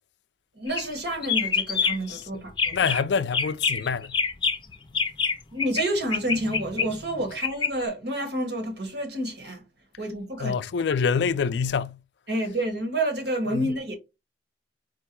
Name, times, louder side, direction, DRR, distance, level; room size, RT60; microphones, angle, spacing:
voice 1, 0.5-2.7 5.5-9.6 10.0-10.6 12.3-14.0, right 1 dB, 70° right, 1.6 m, -29 dB
sound 1, 0.7-0.9 1.2-2.2 2.5-3.0 3.3-5.8 6.1-7.7, left 5 dB, 25° left, 0.6 m, -26 dB
voice 2, 2.1-2.4 2.7-4.2 10.4-12.0 13.5-13.7, left 6 dB, 75° left, 0.4 m, -26 dB
4.5 x 2.2 x 4.5 m
head